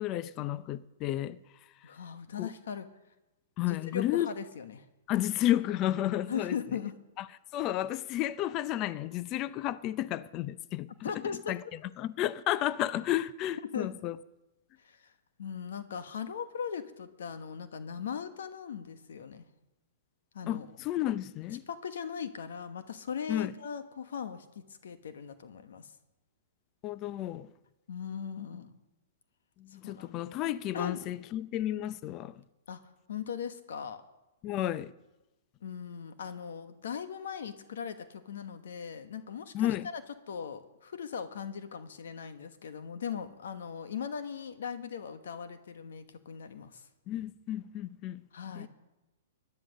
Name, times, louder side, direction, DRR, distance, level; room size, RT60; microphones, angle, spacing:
voice 1, 0.0-1.4 2.4-2.5 3.6-4.3 5.1-6.6 7.2-7.3 7.5-11.6 12.0-14.2 20.5-21.6 23.3-23.5 26.8-27.5 29.6-32.4 34.4-34.9 39.5-39.9 47.1-48.2 48.6-48.7, left 13 dB, 35° left, 0.5 m, -32 dB
voice 2, 1.8-2.9 3.6-4.8 6.3-7.0 11.0-11.5 13.6-13.9 14.8-15.1 15.4-19.5 20.3-20.7 21.7-25.9 27.9-28.7 29.8-30.1 30.7-31.0 32.7-32.8 33.1-34.0 35.6-40.0 40.3-46.9 48.3-48.7, left 7 dB, 75° left, 1.2 m, -39 dB
16.5 x 10.5 x 6.4 m
hypercardioid pair, 130°, 0 cm